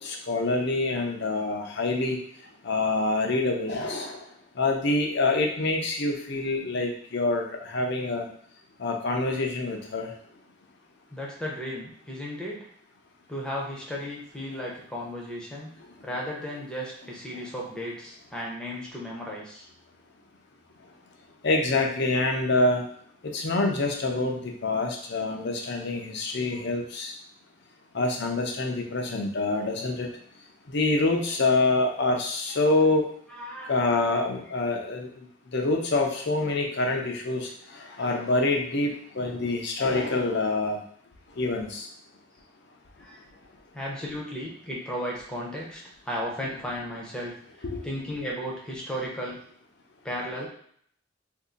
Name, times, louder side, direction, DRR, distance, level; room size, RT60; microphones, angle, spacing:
voice 1, 0.0-2.2 2.6-4.2 4.6-8.3 8.8-10.1 21.4-22.8 23.3-27.1 27.9-30.1 30.7-33.1 33.7-35.2 35.5-40.8 41.4-41.9 47.6-47.8, left 2 dB, 60° left, 2 dB, 0.6 m, -26 dB
voice 2, 11.1-12.6 13.3-15.7 16.0-19.7 26.5-26.6 33.3-34.0 43.0-43.2 43.7-45.8 46.0-47.3 47.8-49.4 50.0-50.5, equal, 5° left, -3 dB, 0.8 m, -35 dB
2.7 x 2.6 x 3.7 m, 0.63 s
head